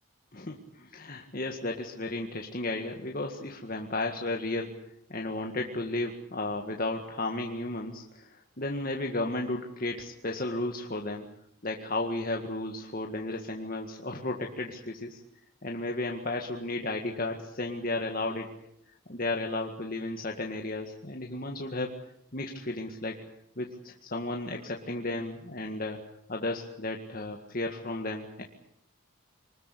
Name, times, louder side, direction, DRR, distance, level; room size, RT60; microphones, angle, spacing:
voice 1, 0.3-4.7 5.1-11.3 11.6-15.2 15.6-18.5 19.1-21.9 22.3-23.2 23.6-26.0 26.3-28.4, left 2 dB, 40° left, 2 dB, 1.9 m, -34 dB
25.0 x 20.0 x 8.4 m, 0.73 s
head